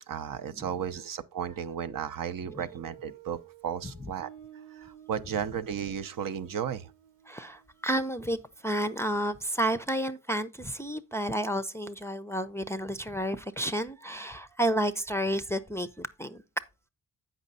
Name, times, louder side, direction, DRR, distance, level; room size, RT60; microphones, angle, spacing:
voice 1, 0.1-4.3 4.7-6.9, right 8 dB, 50° right, 0.7 m, -34 dB
Guitar, 2.5-9.1, right 11 dB, 80° right, 1.2 m, -53 dB
voice 2, 7.3-16.4, right 1 dB, 5° left, 0.6 m, -31 dB
8.0 x 5.3 x 4.0 m
hypercardioid pair, 50°, 42 cm